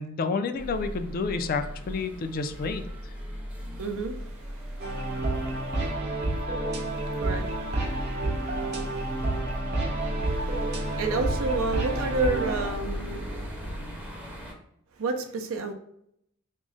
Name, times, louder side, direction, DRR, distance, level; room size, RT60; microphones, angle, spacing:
voice 1, 0.0-2.8, left 4 dB, 45° left, 8 dB, 0.3 m, -29 dB
sound 1, 0.6-14.5, equal, 5° right, 0.6 m, -36 dB
voice 2, 3.8-5.9 6.7-9.4 10.2-13.8 15.0-15.7, right 3 dB, 70° right, 6 dB, 0.5 m, -33 dB
sound 2, 4.8-12.7, right 2 dB, 55° right, 0.8 m, -30 dB
3.6 x 2.1 x 3.8 m, 0.73 s
head